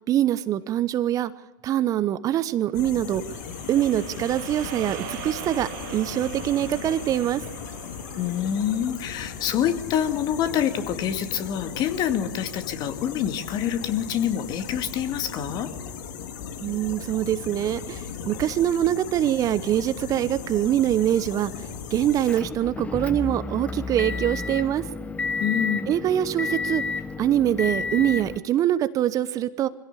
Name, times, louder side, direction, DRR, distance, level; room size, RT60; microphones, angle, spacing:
voice 1, 0.1-1.3 1.6-3.2 3.7-7.4 16.6-24.8 25.9-26.8 27.2-29.7, right 12 dB, 35° right, 14 dB, 0.9 m, -24 dB
sound 1, 2.7-22.4, left 7 dB, 65° left, 2.5 m, -37 dB
sound 2, 2.9-11.3, right 13 dB, 55° right, 1.9 m, -43 dB
voice 2, 8.2-15.7 25.4-25.9, left 9 dB, 40° left, 8 dB, 2.2 m, -26 dB
Motor vehicle (road) / Engine, 22.3-28.4, left 4 dB, 10° left, 1.0 m, -31 dB
22.0 x 16.5 x 8.5 m, 1.1 s
hypercardioid pair, 100°, 11 cm